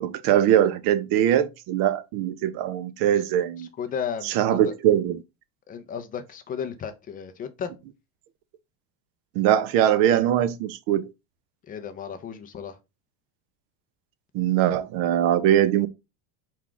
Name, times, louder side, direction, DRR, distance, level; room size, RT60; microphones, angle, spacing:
voice 1, 0.0-3.7 4.2-5.2 9.4-11.1 14.3-15.9, right 11 dB, 55° right, 0.5 m, -22 dB
voice 2, 3.6-4.7 5.7-7.7 11.7-12.8, left 7 dB, 20° left, 0.4 m, -34 dB
4.6 x 2.4 x 3.7 m
supercardioid pair, 135°, 44 cm